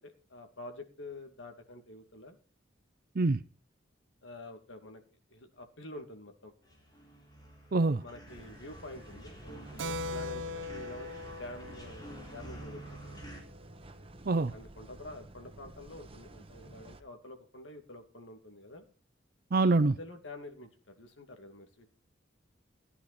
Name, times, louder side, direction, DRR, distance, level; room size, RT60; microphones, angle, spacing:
voice 1, 0.0-2.4 4.2-5.0 5.3-6.5 8.0-13.2 14.2-18.9 20.0-21.9, left 1 dB, 85° left, 2.5 m, -48 dB
sound 1, 6.6-13.4, right 1 dB, 20° left, 3.5 m, -48 dB
voice 2, 7.7-8.0 14.3-14.5 19.5-20.0, right 3 dB, 55° right, 0.6 m, -25 dB
sound 2, 8.3-17.0, right 2 dB, 30° right, 1.1 m, -52 dB
Keyboard (musical), 9.8-13.9, left 2 dB, 85° right, 0.7 m, -41 dB
15.0 x 10.0 x 4.3 m
head